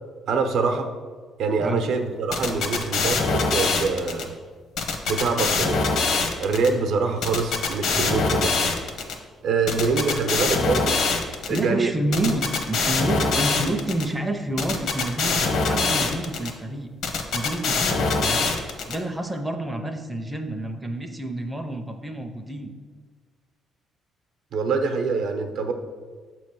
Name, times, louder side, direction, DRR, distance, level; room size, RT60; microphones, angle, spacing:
voice 1, 0.3-0.9 1.4-4.3 5.1-5.8 6.4-8.6 9.4-11.0 11.5-11.9 24.5-25.7, right 4 dB, 70° right, 5 dB, 0.7 m, -24 dB
sound 1, 2.3-4.2 4.8-6.7 7.2-9.1 9.7-11.6 12.1-14.0 14.6-16.5 17.0-18.9, left 4 dB, 70° left, 0.8 m, -23 dB
voice 2, 11.5-16.9 17.3-18.5 18.9-22.7, right 1 dB, 5° right, 3 dB, 0.5 m, -29 dB
7.0 x 3.1 x 6.0 m, 1.5 s
cardioid pair, 140°, 0 cm